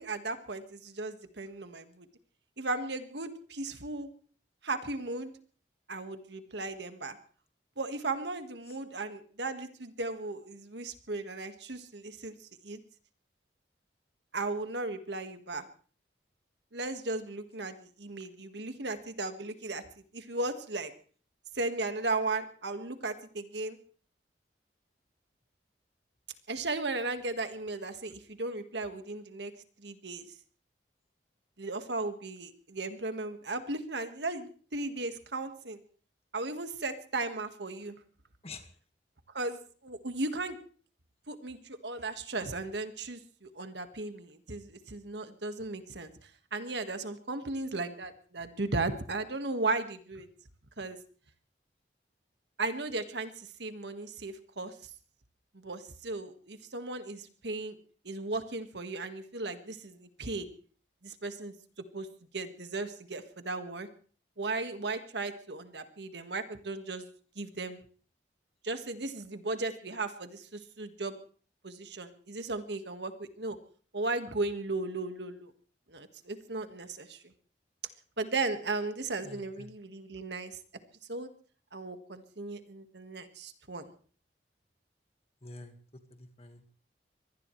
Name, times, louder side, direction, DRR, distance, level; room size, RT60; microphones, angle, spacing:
voice 1, 0.0-2.1 2.6-4.1 4.6-5.3 5.9-7.2 7.8-12.3 12.6-12.8 14.3-15.6 16.7-19.8 20.1-20.9 21.5-23.8 26.5-29.5 29.8-30.2 31.6-35.8 36.3-38.0 39.3-40.6 41.3-46.1 46.5-50.3 50.8-51.0 52.6-53.3 53.6-54.7 55.5-57.8 58.1-60.5 61.0-61.5 61.9-62.1 62.3-63.9 64.4-67.1 67.4-67.8 68.6-71.2 71.6-73.6 73.9-75.5 75.9-77.3 78.2-80.5 81.1-81.3 81.7-83.9, right 3 dB, 70° right, 8 dB, 1.7 m, -36 dB
voice 2, 79.2-79.7 85.4-85.7 86.1-86.6, left 3 dB, 35° left, 7 dB, 1.7 m, -47 dB
24.0 x 18.5 x 3.3 m, 0.42 s
head